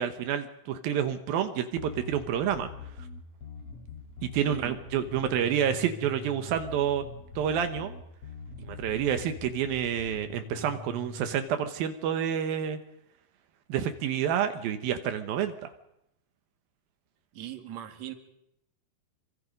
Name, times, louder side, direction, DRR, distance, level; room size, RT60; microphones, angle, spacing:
voice 1, 0.0-2.7 4.2-7.0 7.4-7.9 8.6-12.8 13.7-15.7, right 9 dB, 80° right, 8 dB, 2.9 m, -29 dB
Bass guitar, 1.8-11.4, left 3 dB, 45° left, 4.8 m, -43 dB
voice 2, 17.3-18.1, right 12 dB, 55° right, 7 dB, 2.8 m, -40 dB
26.0 x 24.5 x 5.3 m, 0.81 s
omnidirectional pair, 4.2 m